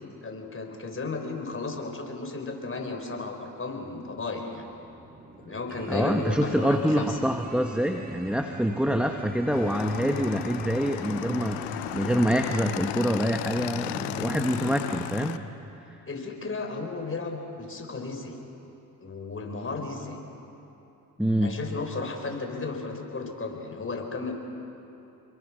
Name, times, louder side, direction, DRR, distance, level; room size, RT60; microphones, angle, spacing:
voice 1, 0.2-4.7 5.4-7.2 13.8-14.4 16.1-18.3 19.0-20.2 21.4-24.3, left 3 dB, 30° left, 3 dB, 5.0 m, -34 dB
sound 1, 4.6-12.7, right 3 dB, 20° right, 2.4 m, -43 dB
voice 2, 5.9-15.4 21.2-21.6, equal, 5° right, 4 dB, 1.4 m, -26 dB
Motorcycle / Engine, 9.5-15.4, left 14 dB, 90° left, 0.9 m, -34 dB
29.5 x 22.5 x 6.4 m, 3.0 s
supercardioid pair, 60°, 41 cm